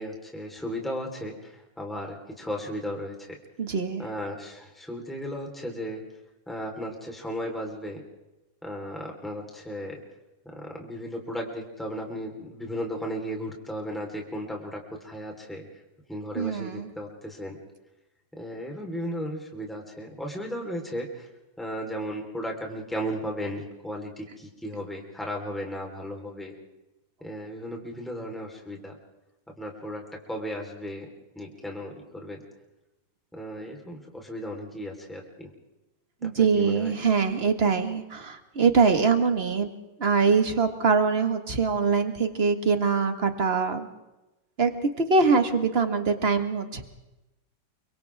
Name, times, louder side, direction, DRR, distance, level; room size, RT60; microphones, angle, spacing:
voice 1, 0.0-3.3 4.0-6.0 6.5-8.0 8.6-9.9 10.5-15.6 16.1-17.6 18.4-21.3 21.6-26.5 27.2-28.9 29.6-31.1 31.3-32.4 33.3-35.5 36.4-36.9, equal, ahead, 0 dB, 4.0 m, -35 dB
voice 2, 3.6-4.0 16.4-16.9 36.2-39.7 40.0-43.9 44.6-44.7 45.0-46.8, right 5 dB, 30° right, 7 dB, 1.9 m, -23 dB
29.5 x 25.5 x 3.6 m, 0.98 s
omnidirectional pair, 2.1 m